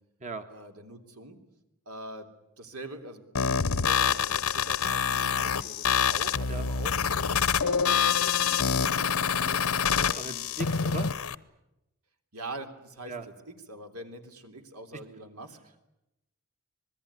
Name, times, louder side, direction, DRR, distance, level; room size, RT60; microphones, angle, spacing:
voice 1, 0.5-1.4 1.8-2.3 2.6-10.5 12.3-13.1 13.5-15.6, right 1 dB, 80° right, 6 dB, 3.3 m, -43 dB
sound 1, 3.4-11.4, left 7 dB, 75° left, 0.9 m, -26 dB
voice 2, 9.9-11.1 13.1-13.3 14.9-15.0, right 2 dB, 35° right, 7 dB, 1.4 m, -38 dB
26.0 x 20.5 x 9.7 m, 0.91 s
head